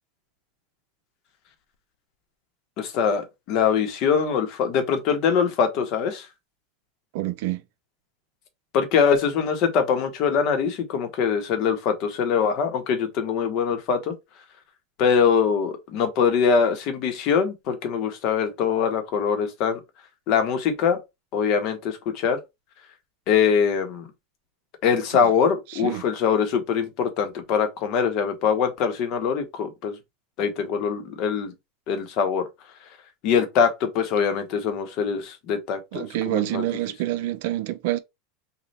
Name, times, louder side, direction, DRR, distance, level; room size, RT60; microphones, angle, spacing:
voice 1, 2.8-6.3 8.7-14.1 15.0-19.8 20.3-21.0 21.3-22.4 23.3-24.1 24.8-30.0 30.4-31.5 31.9-32.5 33.2-36.7, left 6 dB, 45° left, 1.0 m, -23 dB
voice 2, 7.1-7.6 25.1-25.3 25.8-26.0 35.9-38.0, right 14 dB, 65° right, 0.5 m, -27 dB
3.2 x 2.4 x 4.1 m
supercardioid pair, 150°, 0 cm